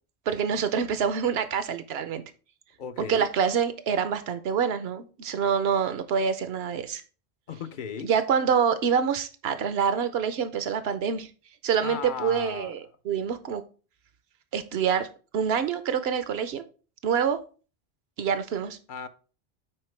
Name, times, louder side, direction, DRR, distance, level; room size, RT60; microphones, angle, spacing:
voice 1, 0.3-2.2 3.0-7.0 8.0-11.3 11.6-13.6 14.5-16.6 17.0-17.4 18.2-18.8, right 7 dB, 70° right, 0.9 m, -26 dB
voice 2, 2.8-3.3 7.5-8.1 11.8-12.7 18.9-19.1, left 7 dB, 55° left, 0.7 m, -36 dB
8.8 x 4.3 x 3.2 m
omnidirectional pair, 1.1 m